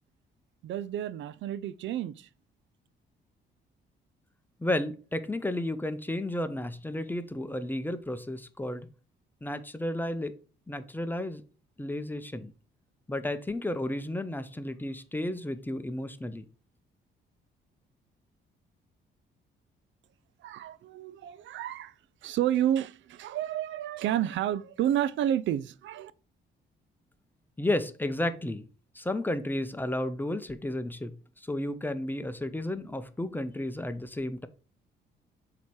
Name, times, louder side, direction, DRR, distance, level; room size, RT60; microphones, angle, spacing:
voice 1, 0.6-2.3 20.4-21.9 22.2-26.1, right 11 dB, 70° right, 0.4 m, -30 dB
voice 2, 4.6-8.9 9.4-10.3 10.7-11.4 11.8-12.5 13.1-16.5 27.6-28.6 28.9-34.5, left 1 dB, 10° left, 0.6 m, -32 dB
7.9 x 2.9 x 4.7 m
cardioid pair, 90°, 20 cm